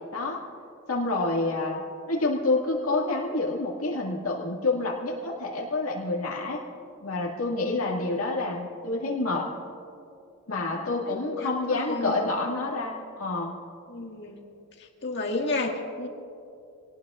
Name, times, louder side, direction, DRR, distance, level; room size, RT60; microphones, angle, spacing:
voice 1, 0.9-1.8 2.1-6.6 7.0-9.5 10.5-13.5, left 2 dB, 80° left, -3 dB, 2.1 m, -28 dB
voice 2, 11.4-12.1 13.9-14.4 15.0-16.1, left 2 dB, 50° left, 0 dB, 1.9 m, -31 dB
25.5 x 18.5 x 2.5 m, 2.6 s
head